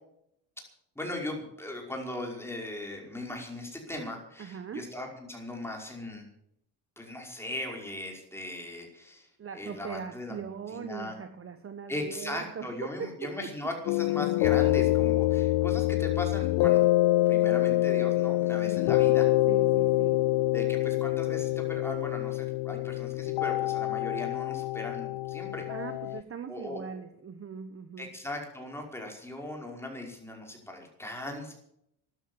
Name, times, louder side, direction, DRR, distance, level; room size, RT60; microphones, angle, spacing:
voice 1, 1.0-6.3 7.0-9.3 9.5-11.1 11.9-16.8 17.3-19.3 20.5-25.7 26.5-26.8 28.0-31.5, left 1 dB, 5° left, 1 dB, 5.3 m, -38 dB
voice 2, 4.4-4.8 9.4-13.3 19.5-20.3 25.7-28.1, right 7 dB, 30° right, 9 dB, 1.2 m, -40 dB
sound 1, 13.9-26.2, left 17 dB, 65° left, 0.5 m, -26 dB
13.0 x 12.0 x 8.0 m, 0.75 s
cardioid pair, 105°, 44 cm